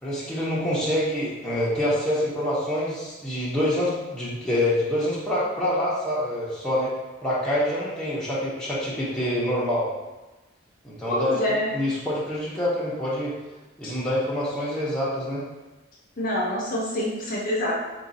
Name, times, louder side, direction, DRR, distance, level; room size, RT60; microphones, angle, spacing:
voice 1, 0.0-6.9 7.2-9.9 10.8-13.3 13.8-15.4, left 1 dB, 5° left, -9 dB, 0.8 m, -26 dB
voice 2, 11.1-11.7 13.8-13.9 16.2-17.8, left 1 dB, 45° left, -4 dB, 0.6 m, -26 dB
3.7 x 2.3 x 4.0 m, 1.1 s
head